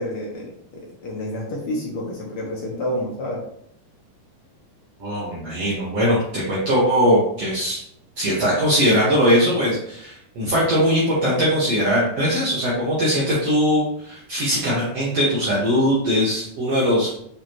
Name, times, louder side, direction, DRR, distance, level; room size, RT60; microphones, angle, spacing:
voice 1, 0.0-3.4, left 1 dB, 60° left, -2 dB, 1.6 m, -29 dB
voice 2, 5.0-7.8 8.2-17.1, equal, 55° right, -7 dB, 2.2 m, -20 dB
6.8 x 4.9 x 3.0 m, 0.69 s
omnidirectional pair, 4.1 m